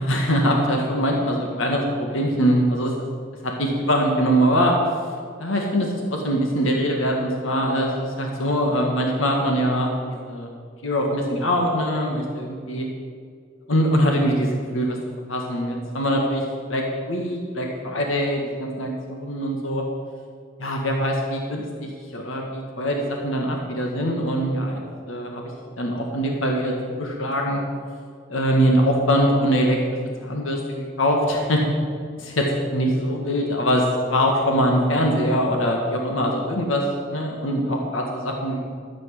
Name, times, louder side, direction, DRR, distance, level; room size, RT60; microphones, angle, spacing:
voice 1, 0.0-2.9 3.4-4.7 5.4-10.5 10.8-12.9 13.7-15.0 15.3-16.4 16.7-19.8 20.6-24.8 25.1-25.4 25.8-26.7 27.0-27.6 28.3-29.8 30.2-31.6 32.2-38.6, equal, 75° left, 0 dB, 1.8 m, -23 dB
13.0 x 7.5 x 7.6 m, 2.1 s
head